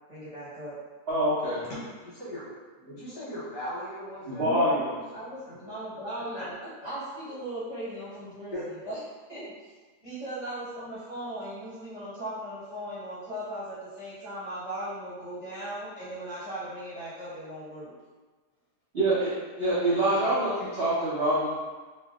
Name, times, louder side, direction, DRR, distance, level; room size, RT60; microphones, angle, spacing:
voice 1, 0.1-0.8 4.4-4.8 5.1-6.5 6.8-8.5 8.8-9.0 9.3-9.5 10.0-17.9, right 1 dB, 25° right, -14 dB, 1.0 m, -37 dB
voice 2, 1.1-1.7 4.3-4.9 18.9-19.3 19.6-21.6, right 1 dB, 55° right, -12 dB, 0.7 m, -25 dB
voice 3, 2.0-2.4 2.8-5.6 6.3-6.5 6.8-6.9 8.5-8.9, equal, 80° left, -9 dB, 1.6 m, -39 dB
3.3 x 2.3 x 2.3 m, 1.3 s
omnidirectional pair, 1.8 m